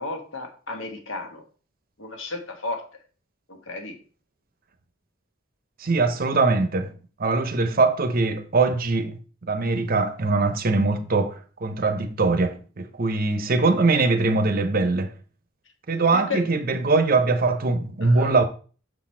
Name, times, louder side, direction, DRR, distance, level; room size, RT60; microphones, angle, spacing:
voice 1, 0.0-1.4 2.0-2.8 3.5-4.0 16.1-16.4 18.0-18.3, left 3 dB, 75° left, 1.4 m, -33 dB
voice 2, 5.8-6.9 7.2-9.2 9.5-15.1 15.9-18.4, right 3 dB, 45° right, 0.7 m, -22 dB
6.7 x 4.2 x 4.4 m
head